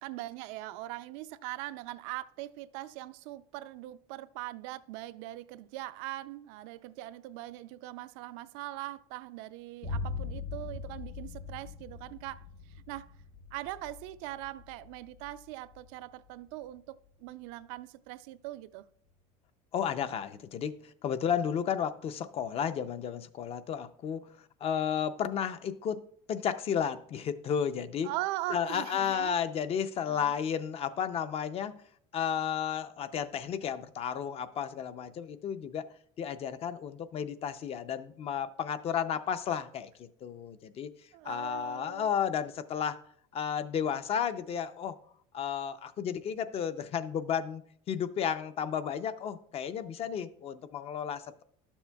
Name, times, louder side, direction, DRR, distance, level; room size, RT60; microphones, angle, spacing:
voice 1, 0.0-12.5 12.9-13.2 13.5-18.8 28.0-29.4 30.1-30.3 41.1-42.1, right 16 dB, 80° right, 0.4 m, -41 dB
Boom, 9.8-17.7, left 4 dB, 85° left, 1.2 m, -42 dB
voice 2, 19.7-24.2 24.6-28.1 28.5-31.8 32.1-35.8 36.2-40.9 41.2-43.0 43.3-45.0 45.3-47.6 47.9-51.4, left 8 dB, 40° left, 0.5 m, -33 dB
11.5 x 7.1 x 2.3 m
cardioid pair, 130°, 16 cm